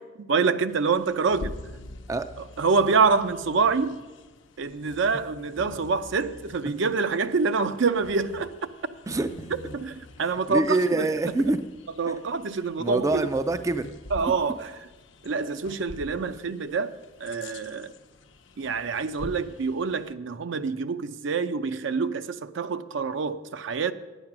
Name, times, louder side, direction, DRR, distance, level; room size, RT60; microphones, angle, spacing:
voice 1, 0.2-1.5 2.6-4.0 4.6-8.7 9.7-11.1 12.0-13.3 14.1-14.7 15.2-17.9 18.6-23.9, right 4 dB, 65° right, 11 dB, 0.5 m, -26 dB
Bird vocalization bird call bird song, 0.7-20.1, left 1 dB, 65° left, 0.7 m, -45 dB
voice 2, 10.5-11.6 12.8-13.9, right 2 dB, 15° right, 10 dB, 0.3 m, -25 dB
9.6 x 8.9 x 6.0 m, 1.2 s
head